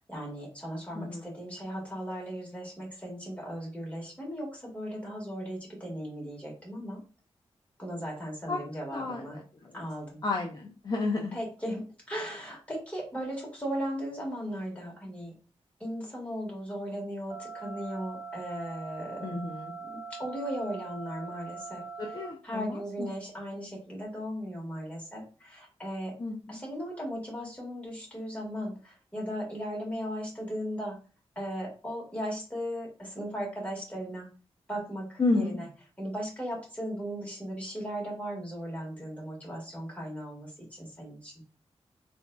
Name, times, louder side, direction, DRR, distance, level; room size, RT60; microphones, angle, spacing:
voice 1, 0.0-7.0 7.8-9.4 9.7-10.2 11.3-15.3 15.8-19.3 19.9-21.8 22.4-26.1 26.5-31.0 31.4-34.3 34.7-35.7 36.0-41.3, equal, 10° left, -3 dB, 1.6 m, -37 dB
voice 2, 0.9-1.3 8.5-8.6 8.9-9.8 10.2-11.4 19.2-19.7 22.0-23.1 26.2-26.6 35.2-35.6, left 3 dB, 35° left, 1 dB, 0.5 m, -31 dB
sound 1, 17.3-22.3, right 5 dB, 45° right, 0.8 m, -42 dB
3.9 x 2.6 x 2.2 m, 0.35 s
wide cardioid pair, 105°, 11 cm